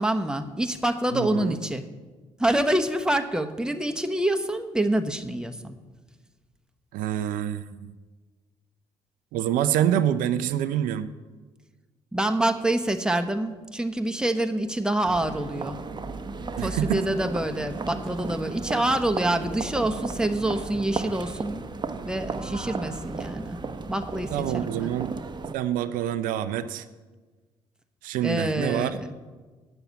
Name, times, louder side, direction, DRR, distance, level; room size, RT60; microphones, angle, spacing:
voice 1, 0.0-1.8 2.4-5.8 12.1-15.8 16.6-21.6 22.0-23.6 23.9-24.9 28.2-29.1, right 1 dB, 5° right, 7 dB, 1.1 m, -26 dB
voice 2, 1.1-1.6 6.9-7.8 9.3-11.1 16.6-17.0 24.3-25.1 25.5-26.8 28.0-29.0, right 11 dB, 75° right, 11 dB, 0.5 m, -26 dB
sound 1, 15.0-25.5, right 4 dB, 30° right, 0.9 m, -34 dB
8.8 x 7.0 x 8.2 m, 1.3 s
hypercardioid pair, 55°, 14 cm